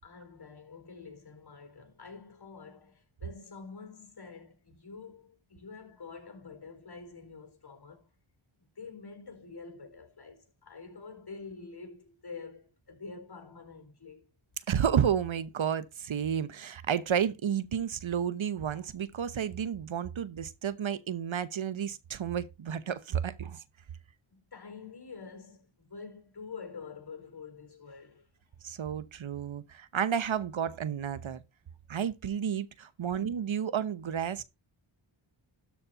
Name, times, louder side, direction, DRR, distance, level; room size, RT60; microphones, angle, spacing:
voice 1, 0.0-8.1 8.6-14.3 24.3-28.3 33.1-33.2, left 4 dB, 50° left, 4.3 m, -47 dB
voice 2, 14.7-23.6 28.6-31.4 31.9-34.4, right 8 dB, 65° right, 1.0 m, -31 dB
13.0 x 4.3 x 5.5 m
cardioid pair, 60°, 50 cm